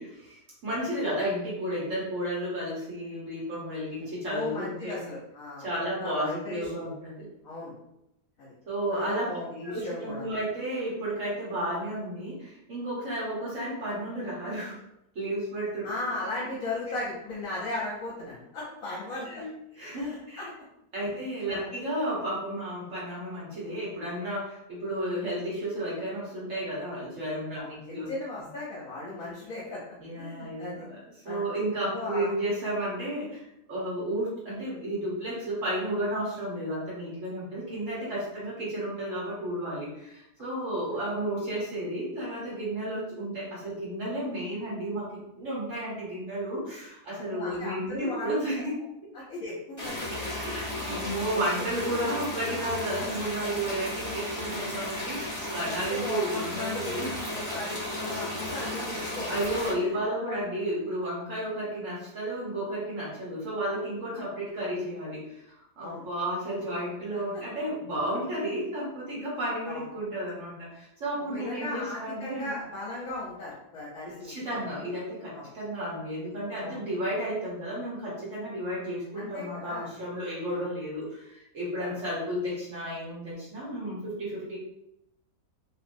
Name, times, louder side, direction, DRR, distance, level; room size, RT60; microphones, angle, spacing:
voice 1, 0.0-5.0 5.6-7.3 8.7-9.3 9.6-14.8 15.1-15.9 19.2-19.5 19.8-20.5 20.9-28.1 30.0-31.0 31.2-33.4 33.7-48.7 50.4-57.1 59.3-72.5 74.1-84.6, right 1 dB, 55° right, -6 dB, 1.3 m, -32 dB
voice 2, 4.0-5.7 6.0-6.7 7.4-7.7 8.4-8.5 8.9-10.4 15.8-19.4 19.9-20.5 21.1-21.2 21.5-21.7 27.5-29.8 30.2-30.9 31.2-31.5 31.9-32.3 47.0-48.5 49.1-50.3 50.8-52.1 55.4-56.9 57.3-59.3 59.8-60.4 64.1-64.2 65.8-66.1 67.3-67.4 69.7-69.9 71.3-74.8 75.3-75.5 76.6-76.8 79.1-79.9 80.5-80.6 81.8-82.0, left 2 dB, 65° left, -6 dB, 1.1 m, -37 dB
sound 1, 49.8-59.7, left 1 dB, 15° left, 0.8 m, -34 dB
2.9 x 2.9 x 2.6 m, 0.84 s
omnidirectional pair, 1.7 m